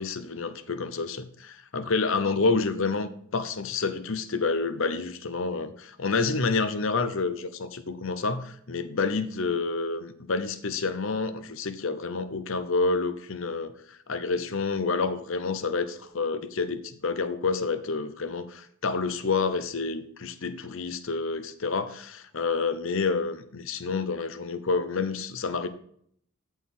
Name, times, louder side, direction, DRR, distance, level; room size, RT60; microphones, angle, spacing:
voice 1, 0.0-25.7, left 4 dB, 65° left, 10 dB, 0.8 m, -29 dB
14.0 x 4.6 x 3.8 m, 0.65 s
head